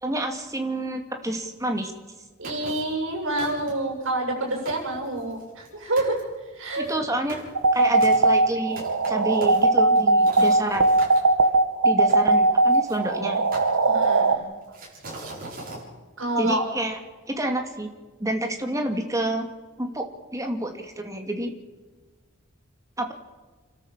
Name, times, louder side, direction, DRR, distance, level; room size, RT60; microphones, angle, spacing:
voice 1, 0.0-1.9 6.8-7.4 7.7-10.9 11.8-13.4 16.4-17.0 17.3-17.9 18.2-19.5 19.8-20.0 20.3-21.5 23.0-23.1, right 1 dB, 15° right, 4 dB, 2.5 m, -28 dB
sound 1, 2.4-3.0 3.4-3.9 4.4-4.5 4.7-5.7 6.0-6.2 6.7-11.2 12.1-13.0 13.5-14.3 14.7-15.8, right 2 dB, 45° right, 7.7 m, -40 dB
voice 2, 2.4-6.2 6.5-6.8 13.9-14.4 16.2-16.6, right 2 dB, 65° right, 1 dB, 7.6 m, -27 dB
sound 2, 7.6-14.4, right 2 dB, 80° right, 1.4 m, -19 dB
30.0 x 13.0 x 7.5 m, 1.3 s
head